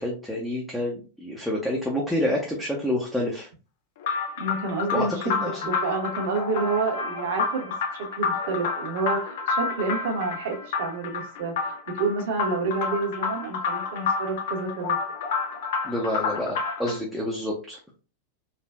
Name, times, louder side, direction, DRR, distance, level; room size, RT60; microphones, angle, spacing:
voice 1, 0.0-3.5 4.9-5.7 15.8-17.8, left 1 dB, ahead, -3 dB, 0.7 m, -28 dB
sound 1, 4.0-17.0, left 5 dB, 55° left, 0.7 m, -29 dB
voice 2, 4.4-11.5 12.0-15.0, right 3 dB, 55° right, 3 dB, 0.9 m, -29 dB
3.3 x 2.4 x 2.3 m, 0.34 s
figure-of-eight pair, 90°, 0 cm